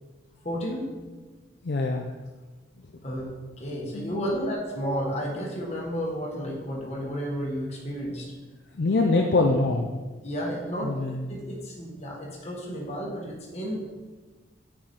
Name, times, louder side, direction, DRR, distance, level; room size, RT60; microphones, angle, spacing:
voice 1, 0.4-0.9 3.0-8.3 10.2-10.9 11.3-14.0, equal, 35° left, -2 dB, 1.3 m, -32 dB
voice 2, 1.6-2.1 3.9-4.3 8.8-10.0 10.8-11.4, left 3 dB, 60° left, 1 dB, 0.5 m, -24 dB
6.0 x 4.9 x 4.2 m, 1.3 s
head